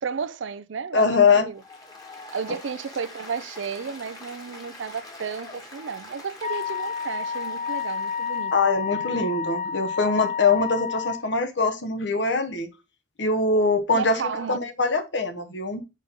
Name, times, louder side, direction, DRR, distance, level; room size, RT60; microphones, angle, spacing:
voice 1, 0.0-1.6 2.3-8.5 13.9-14.6, right 6 dB, 70° right, 0.5 m, -32 dB
voice 2, 0.9-1.5 8.5-12.7 13.2-15.8, left 4 dB, 60° left, 1.1 m, -23 dB
Applause, 1.5-8.5, left 2 dB, 20° left, 1.4 m, -44 dB
Wind instrument woodwind instrument, 6.4-11.2, left 6 dB, 35° left, 2.6 m, -30 dB
5.3 x 5.2 x 3.6 m
head